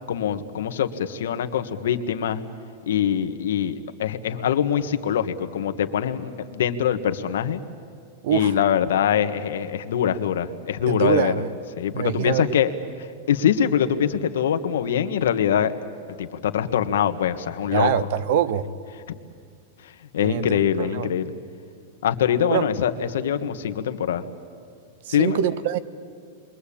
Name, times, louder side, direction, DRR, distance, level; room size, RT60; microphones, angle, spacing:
voice 1, 0.1-2.4 2.9-7.6 8.3-11.3 11.8-12.7 13.3-15.7 16.2-18.1 19.8-21.3 22.0-24.2 25.1-25.4, left 9 dB, 80° left, 8 dB, 1.5 m, -23 dB
voice 2, 8.2-8.5 10.9-11.5 11.9-12.5 17.7-18.7 20.2-21.1 22.5-22.7 25.1-25.8, right 9 dB, 45° right, 15 dB, 1.0 m, -24 dB
29.5 x 23.0 x 8.6 m, 2.2 s
supercardioid pair, 180°, 0 cm